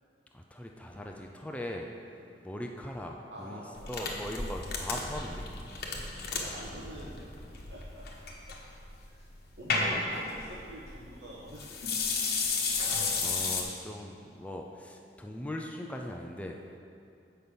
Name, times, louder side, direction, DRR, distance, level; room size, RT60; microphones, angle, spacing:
voice 1, 0.3-2.2 2.4-5.5 9.9-10.0 12.7-16.6, left 1 dB, 10° left, 1 dB, 0.4 m, -40 dB
voice 2, 3.3-4.1 6.4-7.2 7.7-8.1 9.1-9.3 9.6-11.7, equal, 75° right, -7 dB, 1.2 m, -46 dB
sound 1, 3.8-13.6, left 4 dB, 60° left, 1.2 m, -33 dB
7.8 x 5.5 x 6.8 m, 2.5 s
head